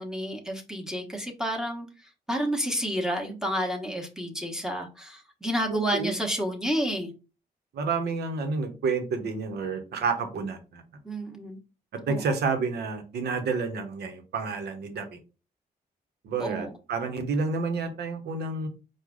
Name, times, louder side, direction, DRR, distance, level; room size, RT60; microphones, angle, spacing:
voice 1, 0.0-1.9 2.3-7.1 11.0-11.6 12.1-12.2 16.4-16.7, equal, 5° right, 1 dB, 1.1 m, -30 dB
voice 2, 5.7-6.1 7.7-10.8 11.9-15.2 16.2-18.7, right 4 dB, 85° right, 5 dB, 0.9 m, -30 dB
4.7 x 2.3 x 3.7 m, 0.32 s
cardioid pair, 80°, 16 cm